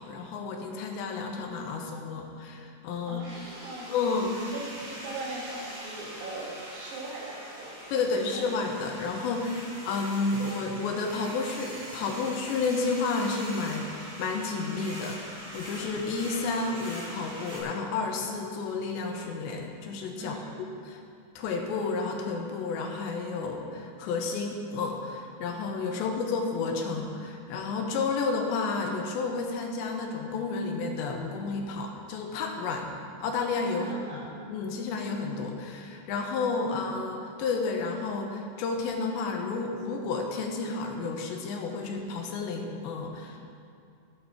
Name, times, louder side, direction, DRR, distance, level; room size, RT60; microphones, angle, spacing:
voice 1, 0.0-3.2 3.9-4.5 7.9-21.0 21.4-32.9 33.2-34.2 34.5-43.4, left 4 dB, 75° left, 2 dB, 3.2 m, -31 dB
voice 2, 3.1-4.0 4.5-7.7 8.0-8.5 20.2-20.6 25.9-26.1 33.8-34.3, right 2 dB, 80° right, -4 dB, 4.9 m, -40 dB
sound 1, 3.2-17.6, equal, 55° right, 5.6 m, -43 dB
15.0 x 11.5 x 4.5 m, 2.5 s
omnidirectional pair, 5.3 m